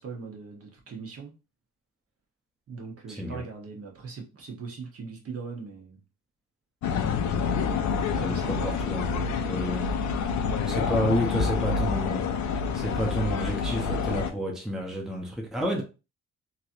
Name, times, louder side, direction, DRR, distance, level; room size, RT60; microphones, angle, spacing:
voice 1, 0.0-1.3 2.7-6.0 8.1-9.9, right 4 dB, 50° right, 1.2 m, -40 dB
sound 1, 6.8-14.3, left 5 dB, 70° left, 0.6 m, -27 dB
voice 2, 8.1-9.9 10.7-15.8, equal, ahead, 0.7 m, -30 dB
3.1 x 2.8 x 2.6 m
cardioid pair, 90°, 30 cm